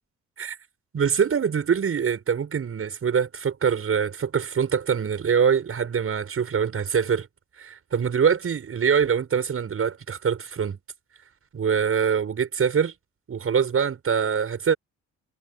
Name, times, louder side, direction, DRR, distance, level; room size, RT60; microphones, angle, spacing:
voice 1, 0.9-7.3 7.6-10.8 11.5-12.9 13.3-14.8, right 7 dB, 45° right, 6.5 m, -24 dB
cardioid pair, 90°, 30 cm